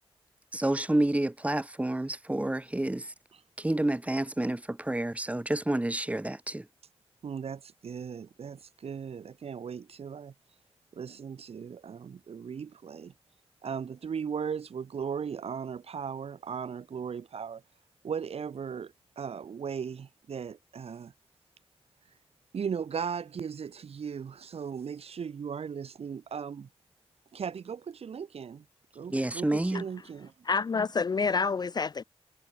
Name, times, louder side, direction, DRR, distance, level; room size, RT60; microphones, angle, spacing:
voice 1, 0.5-3.1 3.6-6.7 29.1-29.8, right 1 dB, 15° right, 0.5 m, -29 dB
voice 2, 7.2-10.3 10.9-13.1 13.6-17.6 18.0-21.1 22.5-26.7 27.3-28.6 28.9-30.3, right 7 dB, 75° right, 0.8 m, -37 dB
voice 3, 30.5-32.0, left 4 dB, 40° left, 0.3 m, -28 dB
cardioid pair, 55°, 10 cm